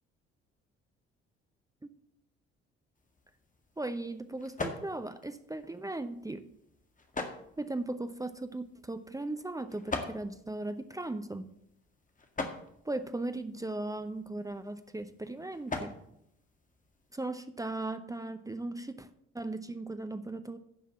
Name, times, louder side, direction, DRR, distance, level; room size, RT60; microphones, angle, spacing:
sound 1, 2.9-17.3, left 3 dB, 25° left, 1.8 m, -44 dB
voice 1, 3.8-6.5 7.6-11.5 12.8-16.0 17.1-19.1 19.3-20.6, right 2 dB, 10° right, 10 dB, 0.8 m, -37 dB
10.5 x 5.7 x 7.6 m, 0.74 s
figure-of-eight pair, 45°, 32 cm